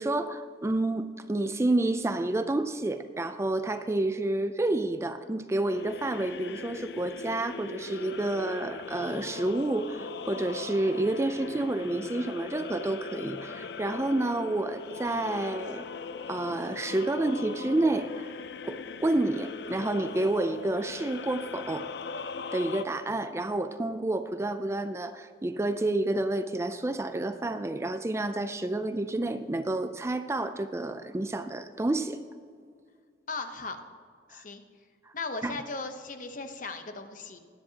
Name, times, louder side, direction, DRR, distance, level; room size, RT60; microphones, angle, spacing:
voice 1, 0.0-15.8 16.3-18.3 18.6-21.9 22.5-32.2 34.3-34.4 35.4-35.5, right 2 dB, 15° right, 10 dB, 0.4 m, -29 dB
sound 1, 5.6-22.8, left 5 dB, 70° left, 0.5 m, -40 dB
voice 2, 33.3-33.8 34.3-34.6 35.1-37.4, left 3 dB, 50° left, 7 dB, 0.9 m, -37 dB
20.5 x 10.0 x 2.9 m, 2.1 s
head